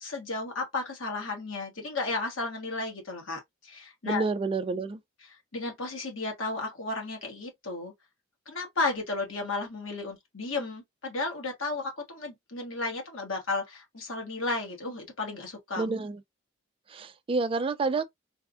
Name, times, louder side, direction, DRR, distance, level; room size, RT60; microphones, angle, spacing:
voice 1, 0.0-4.2 5.2-7.9 8.5-15.9, left 3 dB, 80° left, 1.3 m, -33 dB
voice 2, 4.0-5.0 15.8-16.2 16.9-18.0, right 3 dB, 25° right, 0.3 m, -29 dB
3.3 x 2.2 x 2.5 m
head